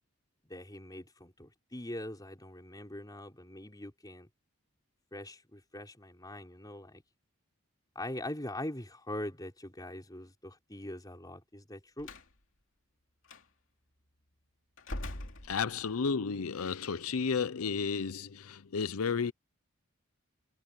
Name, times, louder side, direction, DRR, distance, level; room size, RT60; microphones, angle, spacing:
voice 1, 0.4-4.3 5.1-7.0 7.9-12.1, left 1 dB, 20° left, 4.3 m, -42 dB
Slam, 12.0-12.3 13.2-13.4 14.8-16.1, left 1 dB, 60° left, 2.8 m, -42 dB
voice 2, 15.5-19.3, left 5 dB, 85° left, 0.6 m, -32 dB
head